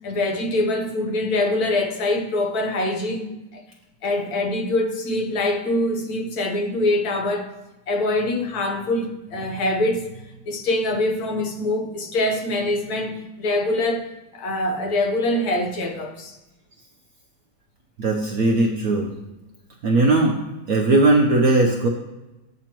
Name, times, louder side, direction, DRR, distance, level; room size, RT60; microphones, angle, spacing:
voice 1, 0.0-3.6 4.0-7.5 7.9-10.1 10.5-14.1 14.3-16.4, left 1 dB, 55° left, 1.3 m, -24 dB
voice 2, 18.0-19.1 19.8-20.4 20.7-21.9, right 2 dB, 65° right, 0.9 m, -18 dB
8.6 x 7.0 x 3.0 m
omnidirectional pair, 2.1 m